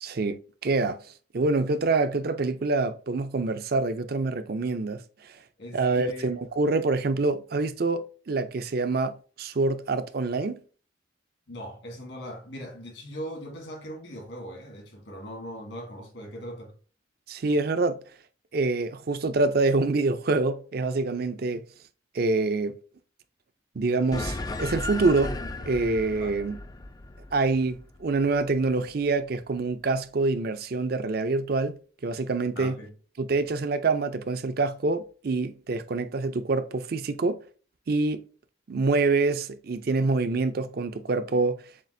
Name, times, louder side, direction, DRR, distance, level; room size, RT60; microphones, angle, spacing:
voice 1, 0.0-1.0 1.3-5.3 5.7-10.6 17.3-18.0 18.5-21.6 22.1-22.8 23.8-26.6 27.3-32.7 33.2-37.4 37.9-38.3 38.7-41.6, right 3 dB, 55° right, 0.5 m, -26 dB
voice 2, 5.6-6.3 11.5-16.8 26.1-26.4 32.6-32.9, equal, 70° left, 1.9 m, -40 dB
sound 1, 24.1-28.9, left 2 dB, 20° left, 0.3 m, -35 dB
7.3 x 2.4 x 2.6 m
head